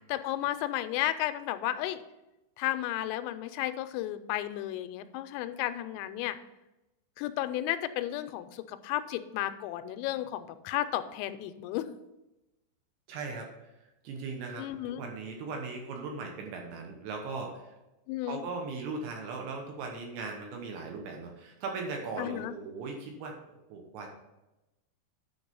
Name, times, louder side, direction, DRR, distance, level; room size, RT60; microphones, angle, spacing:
voice 1, 0.1-2.0 2.6-6.4 7.2-11.9 14.6-15.0 18.1-18.4 22.2-22.5, left 13 dB, 90° left, 11 dB, 3.2 m, -33 dB
voice 2, 13.1-13.7 14.0-17.7 18.2-24.1, right 4 dB, 75° right, 2 dB, 2.9 m, -38 dB
9.8 x 4.7 x 5.3 m, 0.99 s
omnidirectional pair, 5.8 m